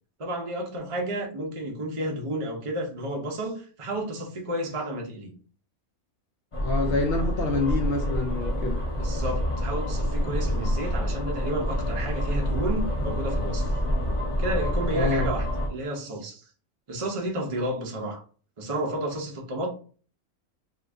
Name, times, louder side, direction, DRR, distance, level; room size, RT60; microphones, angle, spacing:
voice 1, 0.2-5.3 9.0-13.7 14.4-16.4 16.9-18.2 18.6-19.7, right 1 dB, 30° right, 0.6 m, -31 dB
sound 1, 6.5-15.7, equal, 30° left, 0.7 m, -27 dB
voice 2, 6.6-8.8 14.9-15.3, left 3 dB, 65° left, 0.6 m, -27 dB
2.8 x 2.5 x 3.4 m
omnidirectional pair, 1.5 m